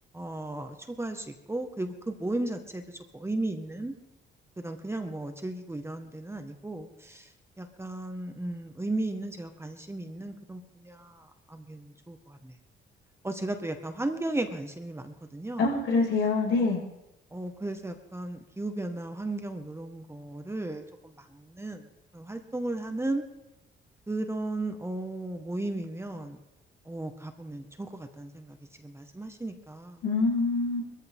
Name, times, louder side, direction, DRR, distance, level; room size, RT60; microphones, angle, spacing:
voice 1, 0.1-3.9 4.6-7.3 7.6-12.5 13.2-15.6 17.3-21.8 22.1-23.2 24.1-26.4 26.9-28.6 28.8-30.0, right 2 dB, 15° right, 5 dB, 1.7 m, -35 dB
voice 2, 15.6-16.8 30.0-30.8, left 3 dB, 75° left, -2 dB, 6.2 m, -25 dB
21.5 x 14.5 x 3.8 m, 0.93 s
cardioid pair, 90°, 20 cm